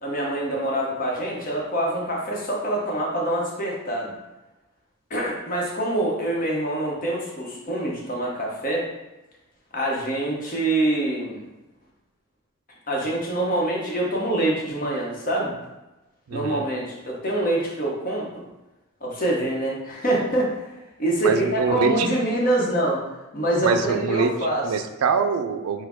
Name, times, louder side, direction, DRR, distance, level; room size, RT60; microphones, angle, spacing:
voice 1, 0.0-4.1 5.1-8.9 9.7-11.5 12.9-15.6 16.3-18.4 19.0-20.5 21.0-23.0 23.3-24.6, right 1 dB, 40° left, -2 dB, 0.9 m, -25 dB
voice 2, 16.3-16.7 21.2-22.1 23.6-24.3 24.6-25.9, right 5 dB, 75° right, 7 dB, 0.4 m, -24 dB
4.2 x 2.2 x 4.4 m, 1.0 s
head